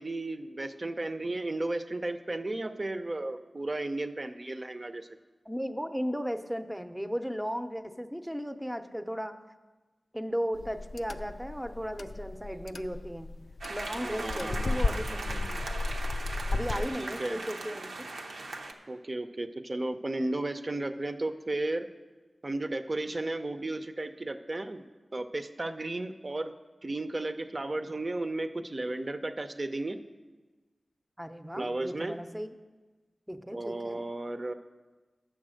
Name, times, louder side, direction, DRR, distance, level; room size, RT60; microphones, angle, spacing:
voice 1, 0.0-5.1 14.0-15.6 16.8-17.4 18.9-21.9 22.4-26.5 26.8-30.0 31.6-32.2 33.5-34.5, right 2 dB, 40° right, 9 dB, 0.6 m, -34 dB
voice 2, 5.5-9.4 10.1-13.3 13.7-15.7 16.5-18.1 31.2-32.5 33.3-34.1, equal, 5° right, 8 dB, 0.7 m, -36 dB
sound 1, 10.5-16.9, left 3 dB, 75° left, 0.4 m, -34 dB
sound 2, 13.6-18.7, right 2 dB, 90° right, 0.8 m, -39 dB
8.9 x 6.9 x 6.4 m, 1.3 s
cardioid pair, 50°, 0 cm